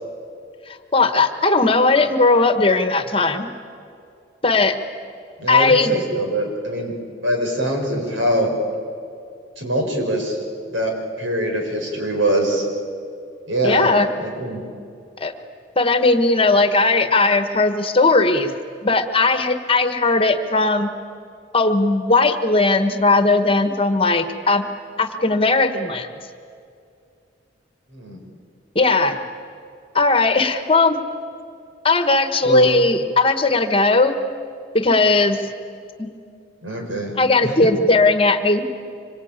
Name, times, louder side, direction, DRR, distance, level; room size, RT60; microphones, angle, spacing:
voice 1, 0.9-3.5 4.4-4.8 5.5-6.0 13.6-14.1 15.2-15.3 15.8-18.5 18.8-20.9 21.5-24.6 25.0-26.1 28.7-29.2 29.9-31.0 31.8-34.2 34.7-35.4 36.0-36.1 37.2-38.8, left 3 dB, 30° left, 9 dB, 1.3 m, -17 dB
voice 2, 5.4-6.9 7.2-8.5 9.6-10.4 10.7-10.9 11.2-12.6 13.5-13.9 14.2-14.6 27.9-28.2 32.4-32.7 36.6-37.7, right 1 dB, 85° right, 2 dB, 5.5 m, -23 dB
26.0 x 23.5 x 8.9 m, 2.4 s
head